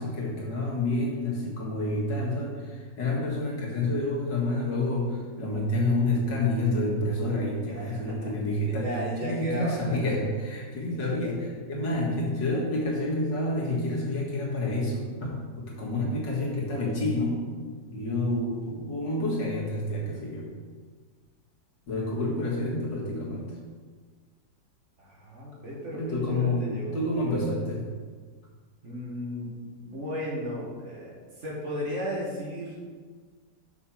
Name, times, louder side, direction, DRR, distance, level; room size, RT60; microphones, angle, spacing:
voice 1, 0.0-8.9 9.2-17.5 17.9-20.5 21.9-23.5 25.9-27.8, left 1 dB, 80° left, -4 dB, 2.5 m, -28 dB
voice 2, 7.8-8.3 8.6-10.0 10.9-11.2 22.4-22.8 25.0-27.0 28.8-32.8, equal, 40° right, -5 dB, 2.0 m, -35 dB
6.1 x 5.9 x 5.8 m, 1.5 s
omnidirectional pair, 1.9 m